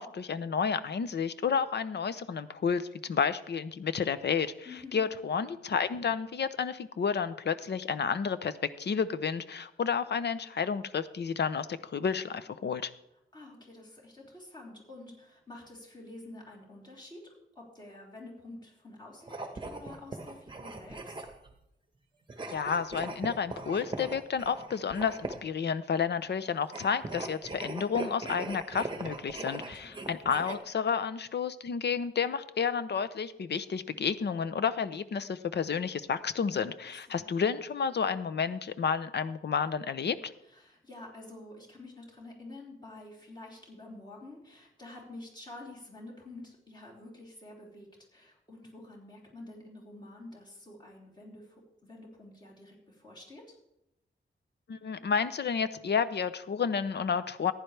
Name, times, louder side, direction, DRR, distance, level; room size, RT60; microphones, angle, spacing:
voice 1, 0.0-4.7 4.9-12.9 22.5-40.3 54.7-57.5, left 6 dB, 55° left, 14 dB, 0.6 m, -31 dB
voice 2, 4.6-5.0 13.3-21.2 29.5-30.1 36.8-37.2 40.5-53.6, left 2 dB, 20° left, -4 dB, 3.4 m, -49 dB
sound 1, 19.2-21.5 22.3-25.6 26.6-30.6, right 2 dB, 25° right, 1.1 m, -40 dB
15.0 x 10.5 x 3.3 m, 0.84 s
wide cardioid pair, 145°, 21 cm